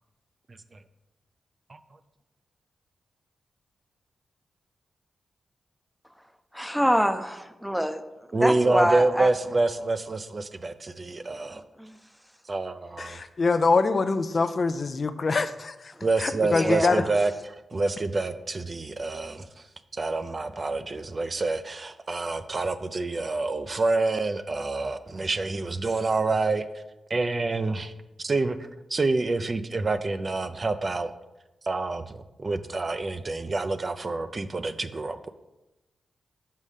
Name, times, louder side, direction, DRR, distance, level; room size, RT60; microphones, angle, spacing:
voice 1, 6.5-8.0 8.3-9.3 11.5-12.0 15.9-16.1 16.4-17.1, equal, ahead, 9 dB, 0.6 m, -26 dB
voice 2, 8.3-11.6 12.5-13.2 16.0-19.4 19.9-26.6 27.1-27.9 28.2-28.6 28.9-31.1 31.7-35.3, right 3 dB, 45° right, 10 dB, 0.4 m, -27 dB
voice 3, 13.0-15.7 16.2-17.0, left 4 dB, 55° left, 10 dB, 0.4 m, -24 dB
5.6 x 5.3 x 4.9 m, 1.0 s
supercardioid pair, 50°, 0 cm